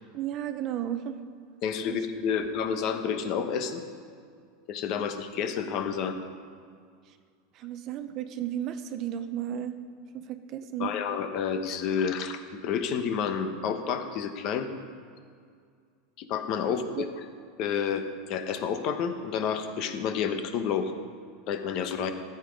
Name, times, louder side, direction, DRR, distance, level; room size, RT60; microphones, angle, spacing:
voice 1, 0.1-1.2 1.9-2.0 7.5-9.8 10.1-10.9 17.0-17.1, right 11 dB, 35° right, 10 dB, 0.6 m, -33 dB
voice 2, 1.6-3.8 4.7-6.2 10.8-14.7 16.2-17.1 17.6-20.9 21.5-22.1, left 7 dB, 45° left, 8 dB, 0.9 m, -30 dB
13.5 x 8.0 x 5.2 m, 2.2 s
supercardioid pair, 160°, 0 cm